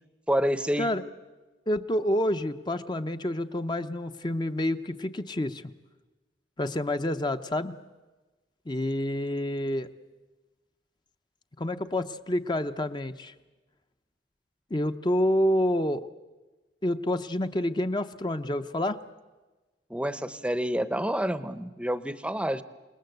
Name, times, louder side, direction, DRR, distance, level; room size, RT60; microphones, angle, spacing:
voice 1, 0.3-0.9 19.9-22.6, equal, 5° right, 13 dB, 0.8 m, -28 dB
voice 2, 1.7-5.7 6.6-7.8 8.7-9.9 11.6-13.3 14.7-16.1 16.8-19.0, left 1 dB, 25° left, 9 dB, 0.8 m, -28 dB
28.0 x 20.0 x 8.0 m, 1.2 s
head